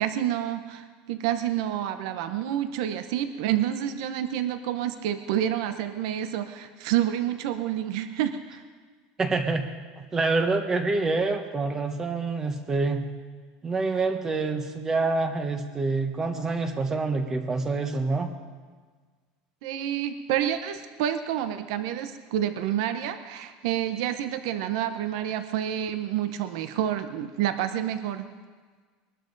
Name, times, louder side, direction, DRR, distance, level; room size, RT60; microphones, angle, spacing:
voice 1, 0.0-8.6 19.6-28.3, right 11 dB, 70° right, 9 dB, 0.8 m, -28 dB
voice 2, 9.2-9.6 10.0-13.0 13.6-18.3, right 3 dB, 15° right, 6 dB, 1.0 m, -26 dB
22.0 x 12.5 x 4.0 m, 1.5 s
cardioid pair, 160°, 3 cm